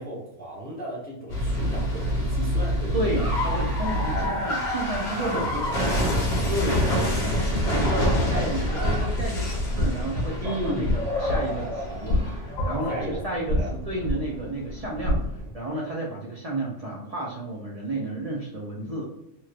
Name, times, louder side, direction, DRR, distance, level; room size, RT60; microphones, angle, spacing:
voice 1, 0.0-3.3 4.1-4.4 5.2-6.6 10.4-11.0 12.9-13.2 13.5-13.7, right 1 dB, 10° left, -5 dB, 0.7 m, -34 dB
sound 1, 1.3-15.5, left 1 dB, 45° left, 0.8 m, -26 dB
voice 2, 2.9-5.6 6.5-10.9 11.2-15.2 15.5-19.1, right 1 dB, 45° right, -3 dB, 0.5 m, -32 dB
3.0 x 3.0 x 2.4 m, 0.83 s
omnidirectional pair, 1.4 m